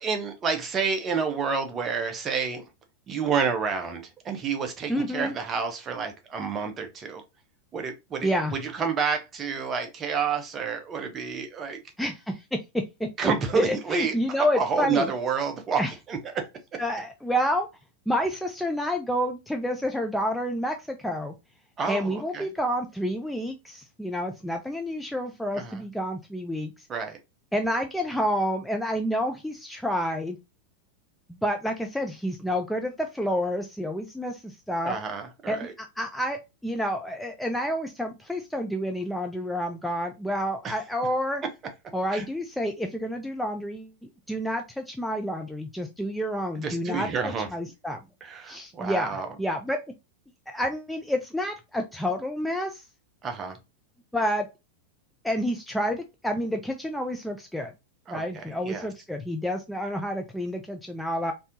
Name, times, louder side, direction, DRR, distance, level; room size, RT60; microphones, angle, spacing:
voice 1, 0.0-2.7 3.1-7.2 7.7-8.3 8.6-11.8 13.2-14.1 14.5-15.8 16.1-16.5 21.8-22.5 25.5-25.8 26.9-27.2 34.8-35.7 40.6-40.7 42.1-42.2 46.6-47.5 48.2-49.3 53.2-53.6 58.1-58.9, right 5 dB, 25° right, 0.7 m, -29 dB
voice 2, 4.9-5.3 8.2-8.6 12.0-12.6 13.0-15.1 15.8-15.9 16.8-17.7 18.1-21.3 21.9-26.7 27.5-30.4 31.3-35.0 35.5-41.4 41.9-43.9 44.3-48.0 48.4-49.8 50.5-52.9 54.1-54.5 55.2-57.7 58.1-61.3, equal, ahead, 0.4 m, -29 dB
3.4 x 2.7 x 2.5 m
figure-of-eight pair, 90°, 0 cm